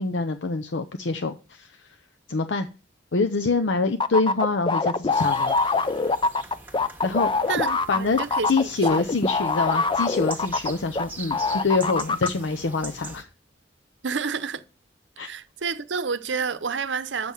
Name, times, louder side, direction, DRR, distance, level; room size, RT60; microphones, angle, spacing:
voice 1, 0.0-1.9 2.3-2.7 3.1-5.6 7.0-7.5 7.9-8.2 8.5-13.3 15.2-15.3, left 3 dB, 80° left, 0.7 m, -25 dB
sound 1, 4.0-11.0 11.3-12.3, left 4 dB, 25° left, 0.5 m, -24 dB
sound 2, 5.1-13.2, right 3 dB, 10° right, 1.3 m, -43 dB
voice 2, 7.5-9.1 14.0-14.6 15.2-17.3, right 5 dB, 75° right, 0.7 m, -29 dB
7.8 x 5.6 x 7.1 m
head